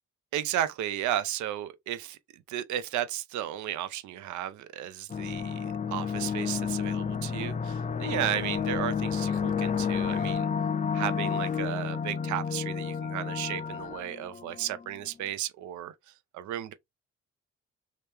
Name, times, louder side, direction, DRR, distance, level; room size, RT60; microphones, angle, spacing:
voice 1, 0.3-10.5 10.9-16.7, right 12 dB, 80° right, 0.5 m, -34 dB
sound 1, 5.1-14.9, left 6 dB, 25° left, 0.4 m, -31 dB
3.0 x 2.1 x 3.3 m
supercardioid pair, 60°, 29 cm